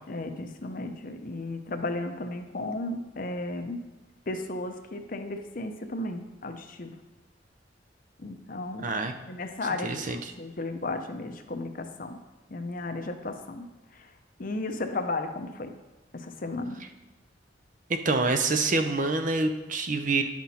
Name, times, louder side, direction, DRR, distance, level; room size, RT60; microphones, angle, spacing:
voice 1, 0.1-3.8 4.3-7.0 8.2-8.9 9.3-10.0 10.4-12.2 12.5-14.1 14.4-15.7 16.1-16.8, left 2 dB, 50° left, 6 dB, 0.7 m, -34 dB
voice 2, 8.8-9.1 9.8-10.2 17.9-20.2, right 3 dB, 45° right, 6 dB, 0.6 m, -26 dB
10.5 x 6.0 x 4.2 m, 1.2 s
head